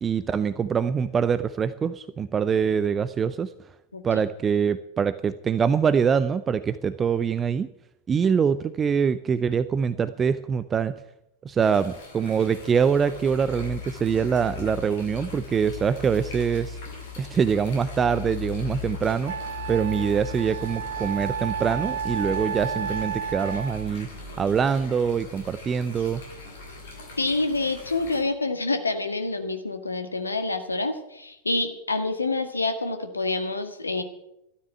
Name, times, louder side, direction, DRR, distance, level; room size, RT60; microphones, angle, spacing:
voice 1, 0.0-3.5 4.0-7.7 8.1-10.9 11.4-16.8 17.2-24.1 24.4-26.2, right 6 dB, 20° right, 14 dB, 0.6 m, -24 dB
sound 1, 11.6-28.2, left 4 dB, 55° left, 6.2 m, -39 dB
Wind instrument woodwind instrument, 18.6-18.7 19.3-23.9, right 7 dB, 55° right, 0.8 m, -32 dB
voice 2, 27.2-34.0, left 3 dB, 80° left, 7 dB, 1.8 m, -27 dB
13.5 x 12.5 x 7.9 m, 0.85 s
figure-of-eight pair, 90°, 0 cm